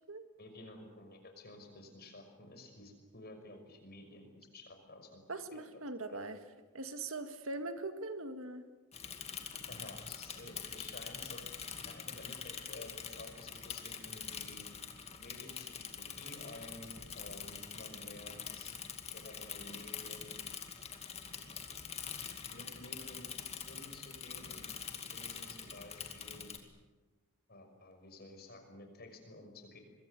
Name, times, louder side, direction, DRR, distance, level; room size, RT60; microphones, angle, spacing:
voice 1, 0.4-5.2 5.5-5.8 6.1-6.2 9.7-11.4 11.8-14.7 15.2-18.8 19.1-20.4 22.5-23.3 23.6-24.7 25.0-26.5 27.5-29.8, left 1 dB, 45° left, 5 dB, 5.8 m, -52 dB
voice 2, 5.3-6.4 6.7-8.6, right 2 dB, 65° right, 8 dB, 2.1 m, -41 dB
Bicycle / Mechanisms, 8.9-26.6, left 7 dB, 30° left, 2.4 m, -45 dB
25.5 x 22.5 x 8.4 m, 1.2 s
head